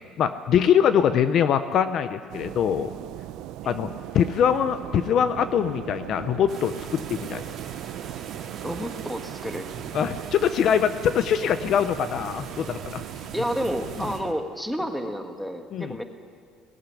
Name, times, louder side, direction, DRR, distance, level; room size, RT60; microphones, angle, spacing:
voice 1, 0.2-2.9 3.7-7.4 9.9-13.0 15.7-16.0, left 8 dB, 45° left, 11 dB, 0.7 m, -23 dB
sound 1, 2.3-14.3, right 13 dB, 70° right, 0.6 m, -39 dB
sound 2, 6.5-14.2, right 6 dB, 45° right, 2.3 m, -41 dB
voice 2, 8.6-9.7 13.3-16.0, equal, ahead, 6 dB, 1.4 m, -30 dB
19.0 x 14.0 x 10.0 m, 2.1 s
cardioid pair, 145°, 0 cm